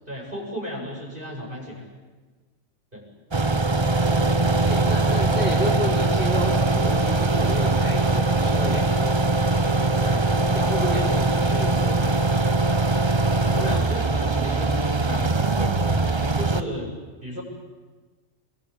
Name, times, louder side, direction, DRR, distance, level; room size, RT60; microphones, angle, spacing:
voice 1, 0.1-1.9 2.9-3.0 4.9-5.3 10.0-10.2 13.5-15.2 15.6-16.0 16.4-16.9 17.2-17.4, equal, 40° right, -1 dB, 7.2 m, -34 dB
sound 1, 3.3-16.6, right 2 dB, 25° right, 0.9 m, -21 dB
voice 2, 4.6-9.3 10.5-12.2, equal, 10° right, -5 dB, 5.0 m, -31 dB
28.0 x 21.5 x 8.6 m, 1.3 s
omnidirectional pair, 1.3 m